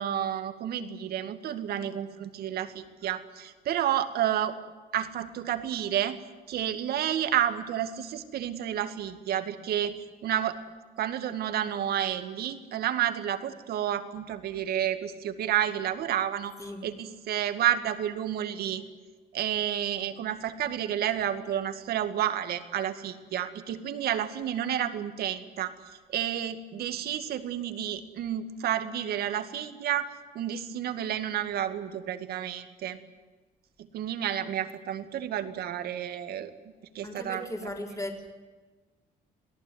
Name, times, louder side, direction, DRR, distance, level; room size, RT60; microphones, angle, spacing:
voice 1, 0.0-4.6 4.9-6.2 6.5-10.6 11.0-16.5 16.8-18.8 19.3-25.7 26.1-30.1 30.3-33.0 33.9-36.5 36.9-37.5, right 10 dB, 65° right, 9 dB, 2.2 m, -30 dB
voice 2, 37.0-38.3, left 1 dB, 20° left, 2 dB, 4.4 m, -37 dB
27.5 x 18.0 x 9.5 m, 1.3 s
cardioid pair, 110°, 17 cm